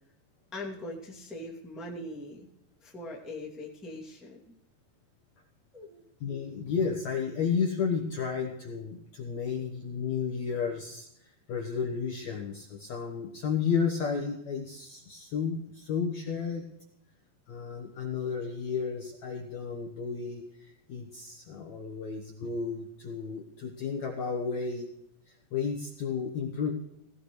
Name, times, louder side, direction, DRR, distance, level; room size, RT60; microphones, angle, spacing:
voice 1, 0.5-2.5 2.8-4.5 5.7-6.0, left 1 dB, ahead, -4 dB, 1.0 m, -41 dB
voice 2, 6.2-16.7 17.5-24.9 25.3-26.7, left 6 dB, 90° left, 1 dB, 1.5 m, -32 dB
18.5 x 16.0 x 3.2 m, 0.78 s
omnidirectional pair, 5.1 m